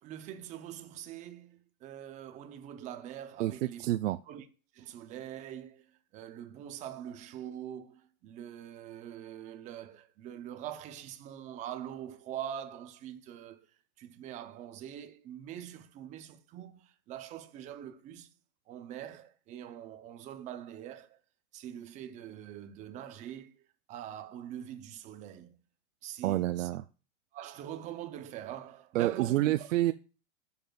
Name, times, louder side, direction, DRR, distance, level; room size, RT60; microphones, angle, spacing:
voice 1, 0.0-3.9 4.3-4.5 4.7-13.7 14.0-18.3 18.7-21.2 21.5-25.6 26.0-26.7 27.3-29.5, right 10 dB, 20° right, 0.5 m, -43 dB
voice 2, 3.8-4.2 26.2-26.8 28.9-29.9, right 15 dB, 80° right, 0.6 m, -28 dB
13.0 x 7.1 x 2.3 m
supercardioid pair, 155°, 38 cm